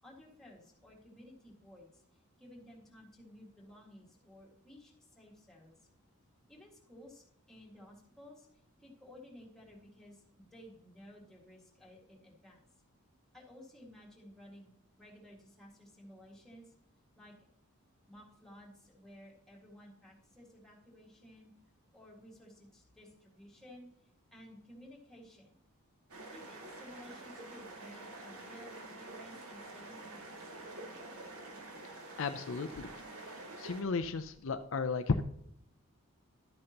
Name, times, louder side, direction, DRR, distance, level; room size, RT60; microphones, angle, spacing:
voice 1, 0.0-5.9 6.5-12.7 13.3-16.7 17.2-17.3 18.1-21.5 21.9-25.6 26.3-30.5, left 1 dB, ahead, -3 dB, 1.9 m, -55 dB
sound 1, 26.1-33.8, right 2 dB, 85° right, 1.9 m, -48 dB
voice 2, 31.8-32.9 33.2-35.2, left 4 dB, 60° left, 9 dB, 0.5 m, -35 dB
12.0 x 8.6 x 2.9 m, 0.74 s
head